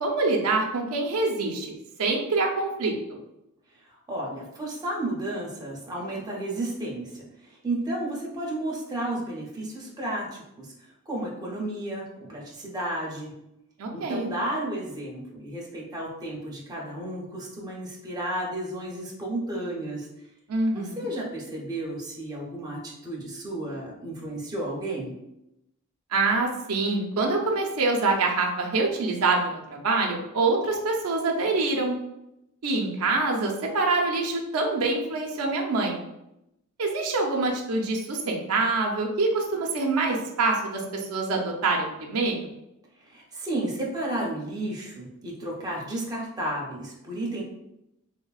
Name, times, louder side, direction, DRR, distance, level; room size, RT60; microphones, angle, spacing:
voice 1, 0.0-1.7 2.0-2.9 13.8-14.3 20.5-21.1 26.1-32.0 32.6-36.0 36.8-42.4, right 3 dB, 85° right, 0 dB, 0.5 m, -25 dB
voice 2, 4.1-10.7 11.1-12.0 12.3-13.3 13.9-20.1 21.0-25.1 43.1-47.4, right 1 dB, 15° right, -4 dB, 0.6 m, -32 dB
3.2 x 2.0 x 2.3 m, 0.85 s
head